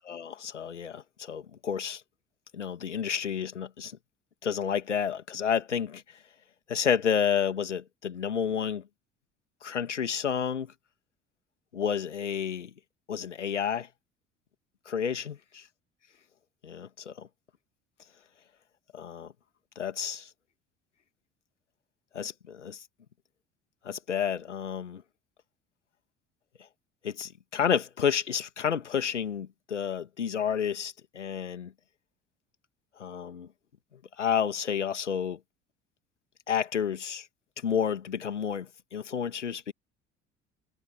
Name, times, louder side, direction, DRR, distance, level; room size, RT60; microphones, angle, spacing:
voice 1, 0.1-2.0 2.5-3.9 4.4-6.0 6.7-8.8 9.6-10.7 11.7-12.7 13.1-13.9 14.9-15.3 16.6-17.3 18.9-19.3 19.8-20.3 22.1-22.8 23.8-25.0 27.0-31.7 33.0-33.5 34.2-35.4 36.5-37.3 37.6-39.7, left 7 dB, 85° left, 2.6 m, -30 dB
figure-of-eight pair, 60°, 35 cm